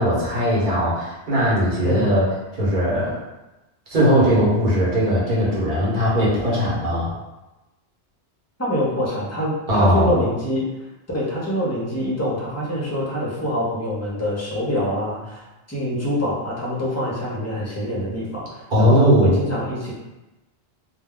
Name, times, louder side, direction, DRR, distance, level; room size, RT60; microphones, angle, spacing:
voice 1, 0.0-2.3 2.6-3.2 3.9-7.1 9.7-10.2 18.7-19.3, equal, 50° right, -7 dB, 1.0 m, -19 dB
voice 2, 1.8-2.1 8.6-19.9, equal, 20° left, -5 dB, 0.5 m, -25 dB
2.3 x 2.2 x 3.5 m, 1.0 s
omnidirectional pair, 1.2 m